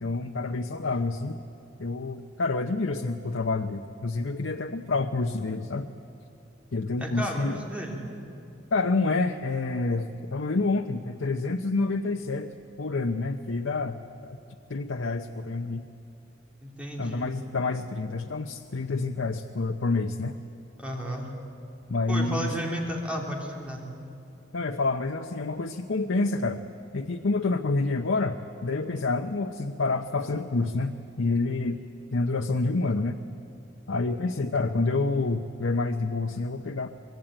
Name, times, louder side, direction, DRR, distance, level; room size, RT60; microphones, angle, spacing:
voice 1, 0.0-1.4 1.8-5.9 6.7-7.5 8.7-14.4 14.7-15.8 17.0-20.3 21.9-22.5 24.5-26.6 26.9-31.8 32.1-33.2 33.9-36.9, left 3 dB, 85° left, 6 dB, 0.8 m, -28 dB
voice 2, 7.0-8.0 16.6-17.3 20.8-21.3 22.1-23.8, equal, 5° right, -1 dB, 3.2 m, -33 dB
25.0 x 21.0 x 9.0 m, 2.6 s
head